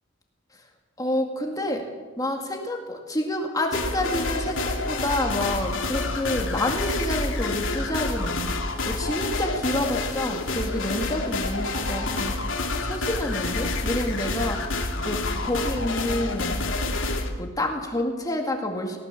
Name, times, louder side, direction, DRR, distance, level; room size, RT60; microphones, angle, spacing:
voice 1, 1.0-1.9 2.2-8.5 8.8-12.4 12.8-14.8 15.0-16.6 17.4-19.0, left 1 dB, 20° left, 2 dB, 2.2 m, -28 dB
sound 1, 3.7-17.3, left 2 dB, 80° left, 2.5 m, -28 dB
19.0 x 19.0 x 7.4 m, 1.4 s
head